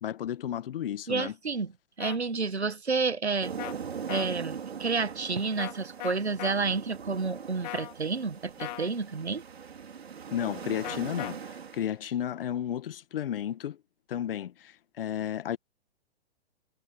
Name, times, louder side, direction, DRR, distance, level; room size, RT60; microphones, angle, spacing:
voice 1, 0.0-1.3 10.3-13.8 14.1-15.6, left 10 dB, 60° left, 1.8 m, -33 dB
voice 2, 1.1-1.7 2.0-3.5 4.1-9.4, right 4 dB, 90° right, 1.8 m, -30 dB
sound 1, 2.0-2.2 3.6-3.7 4.1-4.3 5.6-5.7 6.0-6.5 7.6-7.9 8.6-8.9 10.8-11.3, left 20 dB, 40° left, 1.6 m, -37 dB
sound 2, 3.4-11.9, right 7 dB, 75° right, 5.1 m, -41 dB
figure-of-eight pair, 120°, 32 cm